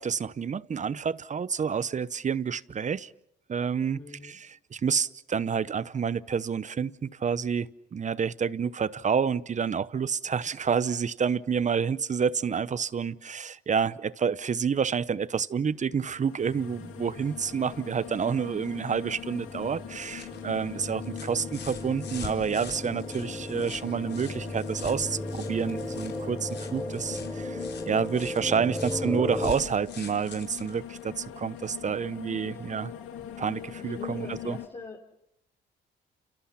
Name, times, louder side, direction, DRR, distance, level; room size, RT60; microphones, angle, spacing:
voice 1, 0.0-3.1 3.5-32.9 33.4-34.6, right 6 dB, 35° right, 0.9 m, -29 dB
voice 2, 4.0-4.4 28.2-28.4 32.4-32.7 33.8-35.2, left 3 dB, 30° left, 4.8 m, -45 dB
sound 1, 15.9-34.7, left 10 dB, 90° left, 2.3 m, -42 dB
sound 2, 16.4-29.5, left 1 dB, 10° left, 3.3 m, -37 dB
sound 3, 19.8-31.8 33.2-33.3, left 6 dB, 60° left, 5.0 m, -45 dB
29.5 x 29.0 x 5.8 m
cardioid pair, 90°, 20 cm